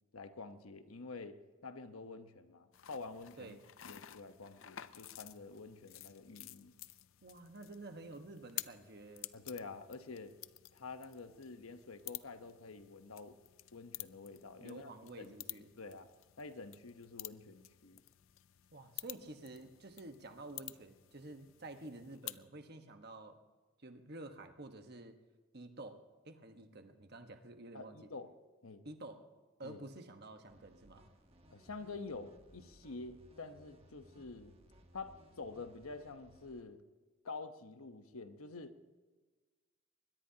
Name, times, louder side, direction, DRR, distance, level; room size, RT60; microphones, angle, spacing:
voice 1, 0.1-1.4 1.6-3.6 3.9-6.7 9.3-10.3 10.7-13.4 13.7-14.9 15.2-16.1 16.4-18.0 27.7-28.3 28.6-28.9 29.6-29.8 31.5-34.6 34.9-36.8 37.2-38.8, left 3 dB, 90° left, 8 dB, 1.1 m, -48 dB
sound 1, 2.7-22.5, left 15 dB, 70° left, 0.5 m, -51 dB
voice 2, 7.2-9.3 14.6-15.7 18.7-23.4 23.8-25.2 25.5-28.1 28.8-29.3 29.6-31.1, right 2 dB, 50° right, 6 dB, 1.3 m, -50 dB
sound 2, 30.5-36.6, equal, 30° right, 1.4 m, -63 dB
22.5 x 20.5 x 2.9 m, 1.3 s
head